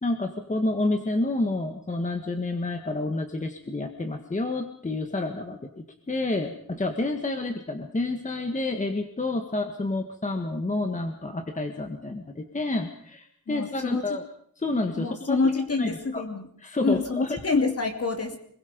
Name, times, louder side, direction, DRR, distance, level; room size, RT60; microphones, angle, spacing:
voice 1, 0.0-14.2 14.6-15.4 15.8-16.2 16.6-17.4, left 2 dB, 20° left, 5 dB, 1.7 m, -29 dB
voice 2, 13.5-14.2 15.0-16.5 16.8-18.4, left 3 dB, 45° left, 4 dB, 2.9 m, -27 dB
27.0 x 21.5 x 5.3 m, 0.65 s
wide cardioid pair, 175°, 34 cm